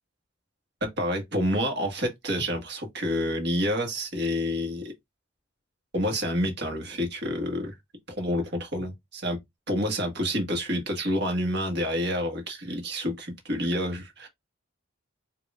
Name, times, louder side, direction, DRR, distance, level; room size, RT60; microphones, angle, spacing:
voice 1, 0.8-4.9 5.9-7.7 8.1-9.4 9.7-14.3, equal, 60° right, 1.5 m, -28 dB
5.2 x 2.9 x 2.4 m
head